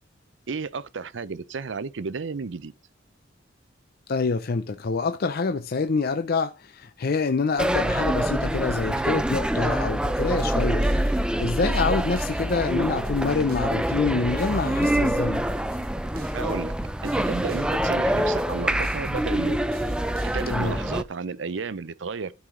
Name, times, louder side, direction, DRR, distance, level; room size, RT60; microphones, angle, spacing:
voice 1, 0.5-2.7 16.3-16.7 17.0-19.6 20.3-22.4, right 4 dB, 70° right, 0.6 m, -32 dB
voice 2, 4.1-15.4 20.5-20.8, left 4 dB, 55° left, 0.5 m, -26 dB
sound 1, 7.6-21.0, right 1 dB, 5° right, 0.5 m, -25 dB
sound 2, 10.2-20.9, right 2 dB, 50° right, 1.0 m, -46 dB
12.5 x 4.8 x 3.7 m
head